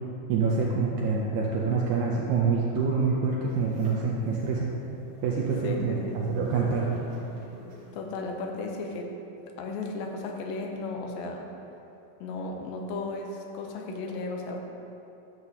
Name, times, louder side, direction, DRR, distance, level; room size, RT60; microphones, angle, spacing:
voice 1, 0.3-4.7 5.2-6.0 6.3-6.9, right 4 dB, 85° right, -3 dB, 1.6 m, -26 dB
sound 1, 3.5-8.2, right 1 dB, 60° right, 2.4 m, -46 dB
voice 2, 5.6-6.2 7.9-9.1 9.4-11.5 12.2-14.6, left 3 dB, 90° left, 2 dB, 2.5 m, -35 dB
10.5 x 6.2 x 2.8 m, 2.9 s
omnidirectional pair, 4.1 m